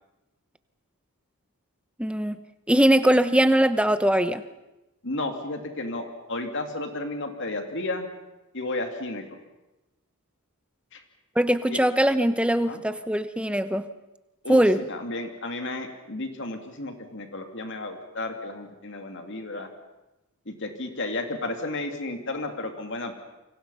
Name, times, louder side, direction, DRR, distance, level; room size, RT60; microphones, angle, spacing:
voice 1, 2.0-2.3 2.7-4.4 11.4-13.9 14.5-14.8, right 1 dB, 5° right, 11 dB, 0.9 m, -21 dB
voice 2, 5.0-8.1 8.5-9.2 10.9-11.0 11.7-11.8 12.7-12.8 14.4-19.7 20.5-23.1, left 2 dB, 55° left, 5 dB, 2.6 m, -33 dB
29.0 x 25.5 x 5.6 m, 0.99 s
head